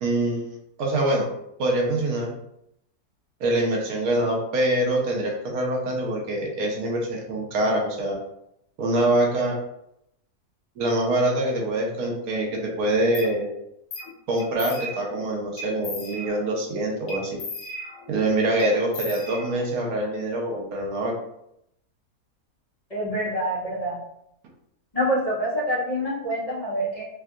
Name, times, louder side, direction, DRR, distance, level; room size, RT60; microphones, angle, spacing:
voice 1, 0.0-1.3 1.6-2.3 3.4-8.1 8.8-9.5 10.8-13.5 14.3-17.4 18.1-21.1, right 1 dB, 75° right, -1 dB, 1.1 m, -24 dB
sound 1, 13.1-13.3 13.9-14.1 14.4-15.2 15.6-16.6 17.1-18.2 18.6-19.8, left 1 dB, 65° left, 0.9 m, -36 dB
voice 2, 22.9-24.0 24.9-27.0, equal, 25° left, -10 dB, 1.2 m, -26 dB
3.4 x 2.6 x 2.3 m, 0.78 s
omnidirectional pair, 1.6 m